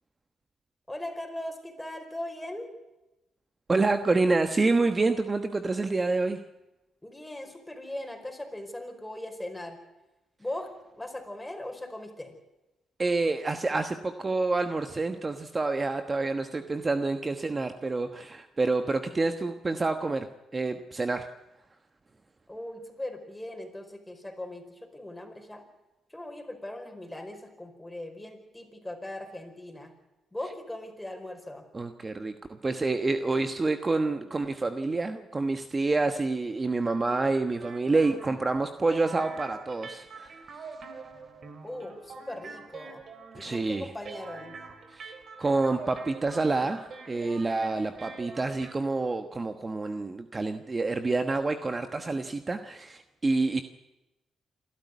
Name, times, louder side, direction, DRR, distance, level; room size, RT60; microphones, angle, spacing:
voice 1, 0.9-2.7 7.0-9.8 10.4-12.3 22.5-25.6 26.1-29.9 30.3-31.6 41.6-43.0 43.3-44.6, left 1 dB, 10° left, 5 dB, 4.9 m, -39 dB
voice 2, 3.7-6.4 13.0-20.3 20.5-21.3 31.7-40.4 43.4-43.9 44.9-45.1 45.4-53.6, right 3 dB, 30° right, 8 dB, 1.3 m, -28 dB
sound 1, 37.5-48.8, right 4 dB, 55° right, 3.4 m, -45 dB
27.0 x 12.5 x 9.6 m, 0.97 s
cardioid pair, 70°, 0 cm